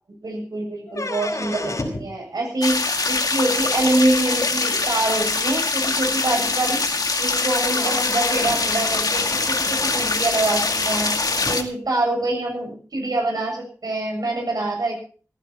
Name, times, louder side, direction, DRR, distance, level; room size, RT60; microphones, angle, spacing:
voice 1, 0.1-2.8 3.1-6.8 7.2-11.2 11.5-15.0, right 2 dB, 85° right, 1 dB, 7.7 m, -25 dB
sound 1, 0.9-2.1 3.8-3.9 4.9-5.0 5.4-5.5 5.8-5.9 7.2-7.3 7.6-11.6, left 2 dB, 60° left, 4.9 m, -31 dB
sound 2, 2.6-11.6, left 3 dB, 80° left, 2.1 m, -23 dB
17.5 x 15.0 x 4.5 m, 0.41 s
wide cardioid pair, 80°, 6 cm